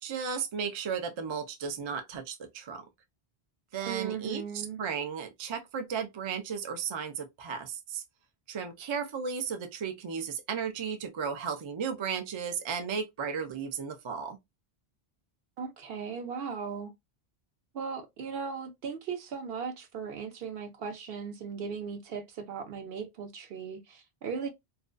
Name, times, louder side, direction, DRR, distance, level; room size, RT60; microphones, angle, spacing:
voice 1, 0.0-2.8 3.7-4.4 4.8-8.0 8.5-14.4, right 6 dB, 50° right, 0.3 m, -34 dB
voice 2, 3.8-4.8 15.6-16.9 17.7-24.5, right 6 dB, 70° right, 0.8 m, -37 dB
2.4 x 2.2 x 2.3 m
omnidirectional pair, 1.0 m